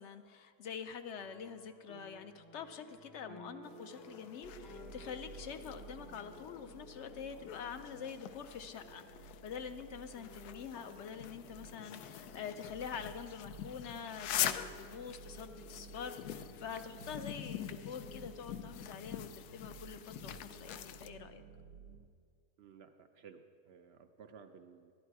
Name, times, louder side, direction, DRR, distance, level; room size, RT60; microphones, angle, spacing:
voice 1, 0.0-21.4, left 7 dB, 65° left, 9 dB, 0.7 m, -46 dB
sound 1, 1.1-12.4, left 1 dB, 25° left, 0.4 m, -58 dB
sound 2, 3.6-21.1, left 11 dB, 80° left, 1.1 m, -44 dB
sound 3, 4.4-22.1, right 6 dB, 85° right, 1.1 m, -55 dB
voice 2, 22.6-24.9, right 6 dB, 70° right, 7 dB, 0.6 m, -56 dB
12.5 x 11.0 x 4.6 m, 2.1 s
omnidirectional pair, 1.6 m